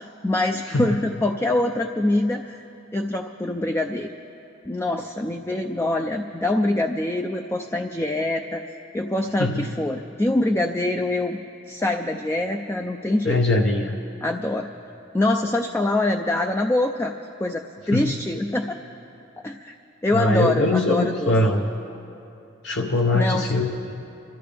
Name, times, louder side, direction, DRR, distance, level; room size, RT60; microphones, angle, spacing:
voice 1, 0.0-2.6 2.9-4.1 4.7-8.6 8.9-11.4 11.7-13.4 14.2-14.7 15.1-17.1 17.4-18.8 19.4-19.8 20.0-21.3 23.1-23.5, left 1 dB, 15° left, 4 dB, 0.4 m, -24 dB
voice 2, 9.4-9.7 13.2-14.0 17.9-18.1 20.1-21.7 22.6-23.9, left 2 dB, 70° left, 1 dB, 0.8 m, -22 dB
25.5 x 13.5 x 3.4 m, 2.8 s
head